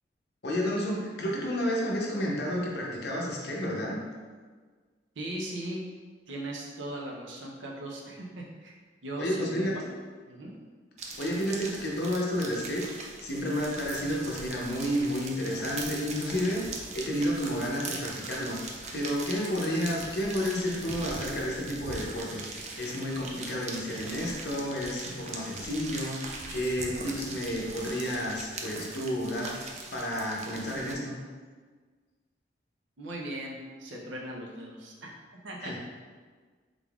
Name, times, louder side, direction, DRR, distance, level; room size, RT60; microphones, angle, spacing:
voice 1, 0.4-4.0 9.2-9.8 11.2-31.2 35.6-35.8, equal, 55° left, -2 dB, 0.7 m, -31 dB
voice 2, 5.2-5.8 6.3-8.8 9.0-9.7 10.3-10.5 33.0-35.1 35.4-35.7, right 1 dB, 80° right, -2 dB, 0.7 m, -38 dB
sound 1, 11.0-30.9, right 3 dB, 35° right, 0.3 m, -41 dB
3.6 x 3.5 x 2.4 m, 1.5 s
head